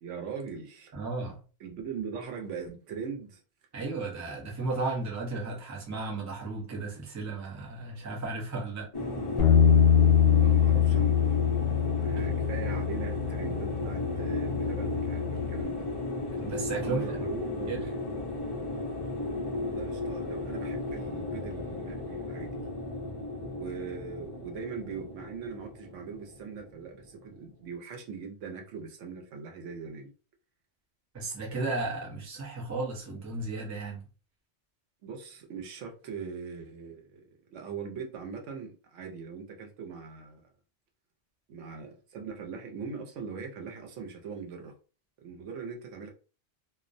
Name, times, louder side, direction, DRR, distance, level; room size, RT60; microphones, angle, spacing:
voice 1, 0.0-0.9 1.6-3.4 10.3-11.6 11.9-15.8 16.8-17.9 19.7-22.6 23.4-30.1 35.0-37.2 37.5-40.4 41.5-44.7 45.2-46.1, right 6 dB, 80° right, 1.0 m, -41 dB
voice 2, 0.9-1.4 3.7-8.9 12.2-12.3 16.4-17.3 17.7-17.8 31.1-34.1, right 3 dB, 20° right, 0.5 m, -34 dB
sound 1, 8.9-27.3, left 2 dB, 40° left, 0.3 m, -35 dB
Bass guitar, 9.4-15.6, left 9 dB, 65° left, 0.8 m, -24 dB
2.4 x 2.1 x 2.5 m
omnidirectional pair, 1.2 m